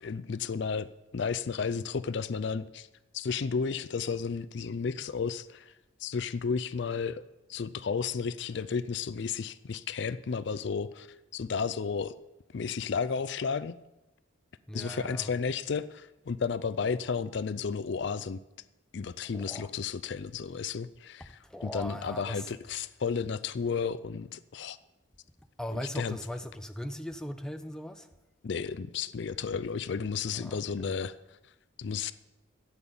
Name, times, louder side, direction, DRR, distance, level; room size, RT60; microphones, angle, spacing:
voice 1, 0.0-0.9 1.1-2.9 3.1-5.7 6.0-7.2 7.5-11.1 11.3-12.1 12.5-13.8 14.7-18.4 18.9-24.8 25.7-26.2 28.4-31.2 31.8-32.1, left 5 dB, 60° left, 0.4 m, -33 dB
voice 2, 14.7-15.3 19.2-19.7 21.4-22.5 25.6-28.1 30.3-30.9, equal, 5° left, 0.6 m, -39 dB
12.5 x 8.6 x 7.1 m
head